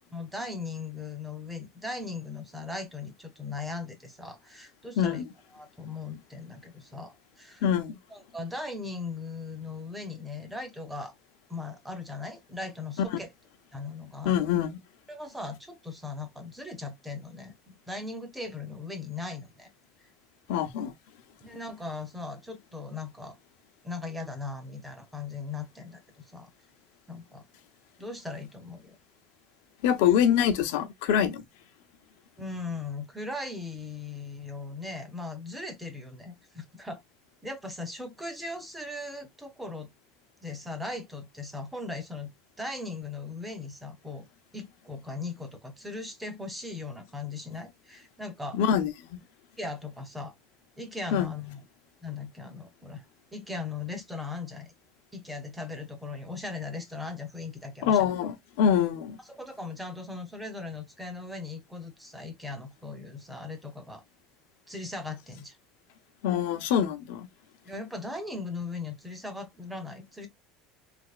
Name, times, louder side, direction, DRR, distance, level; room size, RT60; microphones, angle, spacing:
voice 1, 0.1-5.2 5.5-7.6 8.1-11.1 11.5-13.3 13.7-14.4 15.1-19.7 21.4-23.4 23.8-26.0 26.3-26.5 27.1-27.4 28.0-29.0 32.4-37.0 37.4-39.9 40.4-42.3 42.6-44.2 44.5-48.6 49.6-50.3 50.8-51.6 52.0-53.0 53.3-54.7 55.1-58.1 59.3-64.0 64.7-65.6 67.6-70.3, left 3 dB, 5° right, 0.7 m, -38 dB
voice 2, 7.6-8.0 13.1-13.2 14.2-14.7 20.5-20.9 29.8-31.4 48.5-49.2 51.1-51.3 57.8-59.2 66.2-67.3, left 9 dB, 75° left, 0.7 m, -25 dB
3.4 x 3.0 x 2.4 m
cardioid pair, 170°, 0 cm